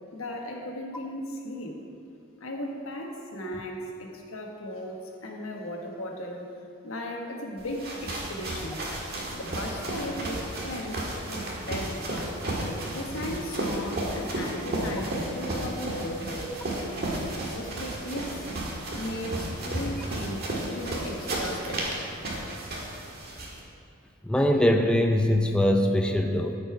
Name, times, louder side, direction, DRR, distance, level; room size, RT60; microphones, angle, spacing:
voice 1, 0.1-1.8 2.4-6.5 6.8-8.8 9.3-12.3 12.9-16.5 17.4-18.5 18.9-21.9, left 1 dB, 90° left, 1 dB, 1.3 m, -36 dB
sound 1, 7.6-23.6, right 1 dB, 50° right, 1.6 m, -33 dB
voice 2, 24.2-26.6, left 1 dB, 5° left, 3 dB, 0.4 m, -22 dB
13.0 x 5.4 x 4.7 m, 2.5 s
head